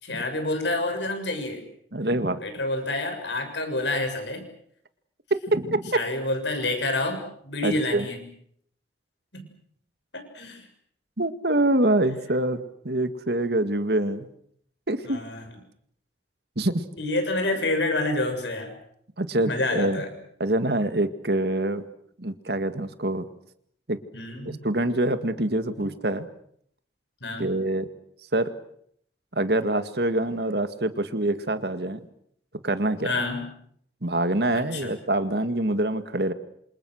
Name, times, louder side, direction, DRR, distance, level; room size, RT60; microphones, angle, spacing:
voice 1, 0.0-1.6 2.4-4.5 5.9-8.3 9.3-9.5 10.1-10.7 15.0-15.4 17.0-18.8 19.4-20.2 24.1-24.6 25.8-25.9 27.2-27.5 33.0-33.5 34.5-35.0, left 2 dB, 80° left, 6 dB, 6.9 m, -28 dB
voice 2, 1.9-2.4 5.5-5.9 7.6-8.1 11.2-14.3 14.9-15.2 16.6-16.8 19.2-20.0 20.4-21.8 22.2-23.3 23.9-24.0 24.6-26.3 27.4-27.9 28.3-28.5 29.3-32.0 32.6-33.1 34.0-36.3, right 1 dB, 65° right, 10 dB, 2.0 m, -25 dB
28.0 x 27.0 x 6.5 m, 0.68 s
head